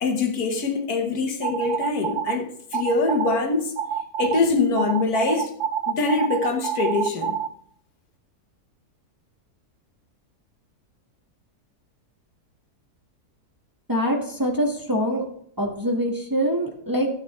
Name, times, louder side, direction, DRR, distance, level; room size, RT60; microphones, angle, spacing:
voice 1, 0.0-3.7 4.2-5.5 5.9-7.4, left 3 dB, 65° left, 1.6 m, -24 dB
sound 1, 1.4-2.4 2.7-3.4 3.8-4.4 4.8-7.5, right 9 dB, 65° right, 0.8 m, -27 dB
voice 2, 13.9-15.2 15.6-17.1, equal, 15° right, 1.2 m, -24 dB
14.0 x 7.4 x 3.1 m
omnidirectional pair, 1.7 m